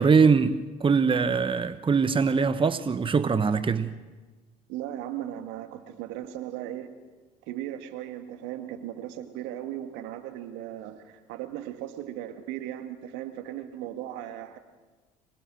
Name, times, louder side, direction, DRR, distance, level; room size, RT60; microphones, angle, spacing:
voice 1, 0.0-3.9, right 5 dB, 25° right, 1.1 m, -22 dB
voice 2, 4.7-7.0 7.5-14.6, right 12 dB, 75° right, 1.9 m, -37 dB
25.5 x 19.5 x 6.3 m
hypercardioid pair, 60°, 19 cm